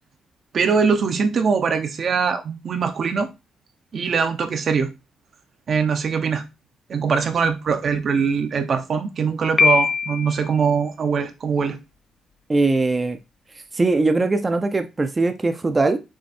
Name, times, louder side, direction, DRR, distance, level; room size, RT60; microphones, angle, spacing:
voice 1, 0.5-3.3 3.9-4.9 5.7-6.4 6.9-11.8, right 5 dB, 50° right, 1.0 m, -22 dB
Piano, 9.6-10.5, left 5 dB, 45° left, 0.5 m, -20 dB
voice 2, 12.5-13.2 13.7-16.0, right 3 dB, 25° right, 0.7 m, -20 dB
6.3 x 3.7 x 4.3 m
cardioid pair, 90°, 0 cm